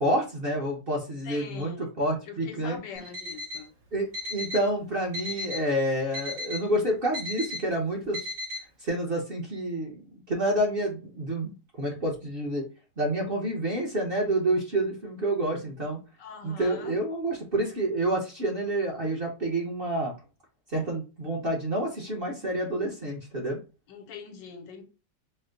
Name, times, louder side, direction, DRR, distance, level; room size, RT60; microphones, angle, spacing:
voice 1, 0.0-2.8 3.9-8.2 8.8-11.5 11.8-12.7 13.0-16.0 16.4-20.1 20.7-23.6, right 1 dB, 40° right, 0.9 m, -28 dB
voice 2, 1.2-1.9 2.3-3.7 16.2-17.0 23.9-24.8, left 6 dB, 80° left, 1.4 m, -42 dB
Alarm, 3.0-3.7 4.1-4.7 5.1-5.7 6.1-6.7 7.1-7.6 8.1-8.6, left 2 dB, 90° right, 2.5 m, -35 dB
4.3 x 2.1 x 3.8 m
omnidirectional pair, 1.9 m